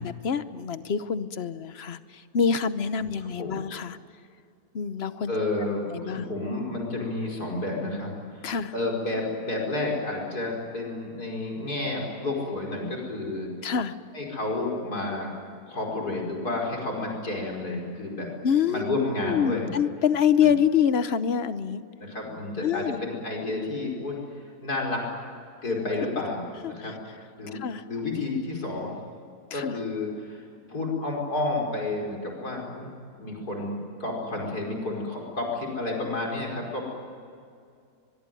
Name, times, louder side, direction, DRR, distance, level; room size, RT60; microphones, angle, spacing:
voice 1, 0.0-4.0 4.7-5.3 5.9-6.2 8.4-8.7 13.6-13.9 18.4-18.9 19.2-21.8 22.6-23.0 26.6-26.9 27.5-27.8 29.5-29.8, left 7 dB, 45° left, 13 dB, 1.0 m, -26 dB
voice 2, 3.2-3.6 5.3-13.5 14.1-15.3 15.7-18.3 18.7-19.7 20.4-20.5 22.0-25.0 25.6-26.9 27.4-29.0 29.5-36.8, left 2 dB, 75° left, -1 dB, 5.8 m, -31 dB
23.0 x 22.0 x 9.3 m, 2.4 s
omnidirectional pair, 1.7 m